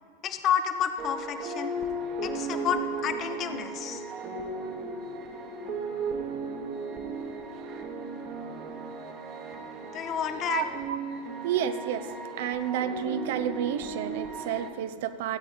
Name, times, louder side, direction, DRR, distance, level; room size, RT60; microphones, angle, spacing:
voice 1, 0.2-1.7 2.2-4.0 9.9-10.7, left 8 dB, 30° left, 9 dB, 0.8 m, -30 dB
sound 1, 1.0-14.7, right 3 dB, 35° right, 1.2 m, -36 dB
voice 2, 10.4-11.0 11.4-12.1 12.4-15.4, right 9 dB, 50° right, 10 dB, 0.5 m, -30 dB
15.5 x 8.3 x 4.0 m, 2.3 s
figure-of-eight pair, 90°, 0 cm